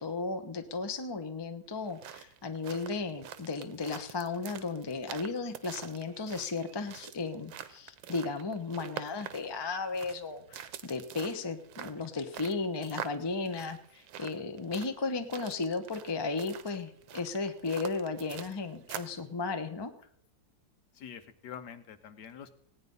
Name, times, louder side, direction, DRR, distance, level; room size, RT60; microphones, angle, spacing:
voice 1, 0.0-19.9, left 4 dB, 25° left, 7 dB, 0.6 m, -35 dB
sound 1, 1.8-19.2, right 10 dB, 80° right, 1.6 m, -46 dB
voice 2, 20.9-22.5, left 8 dB, 65° left, 10 dB, 1.4 m, -46 dB
17.5 x 9.6 x 5.4 m, 0.70 s
omnidirectional pair, 2.1 m